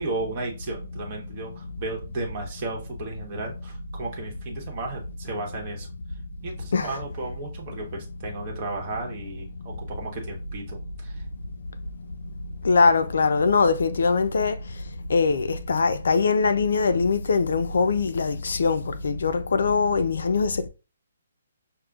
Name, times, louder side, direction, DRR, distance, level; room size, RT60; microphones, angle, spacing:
voice 1, 0.0-5.9 6.4-11.2, right 2 dB, 25° right, 1.0 m, -34 dB
voice 2, 12.6-14.6 15.1-20.7, left 4 dB, 70° left, 0.4 m, -22 dB
6.4 x 2.1 x 2.3 m
hypercardioid pair, 170°, 0 cm